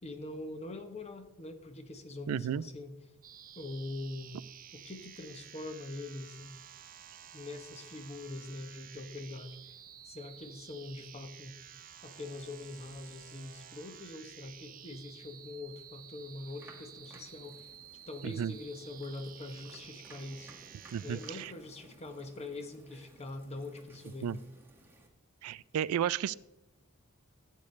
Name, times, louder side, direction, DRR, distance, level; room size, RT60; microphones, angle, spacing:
voice 1, 0.0-2.9 3.6-4.4 4.7-6.6 7.3-9.8 10.0-11.6 12.0-17.7 18.1-20.5 21.0-24.5, left 2 dB, 30° left, 7 dB, 1.0 m, -43 dB
voice 2, 2.3-2.6 18.2-18.5 20.9-21.5 24.2-24.4 25.4-26.3, right 9 dB, 90° right, 19 dB, 0.3 m, -33 dB
sound 1, 3.2-21.5, right 9 dB, 40° right, 0.6 m, -52 dB
sound 2, 16.5-25.1, right 2 dB, 10° right, 1.3 m, -58 dB
13.5 x 8.5 x 3.2 m, 0.93 s
head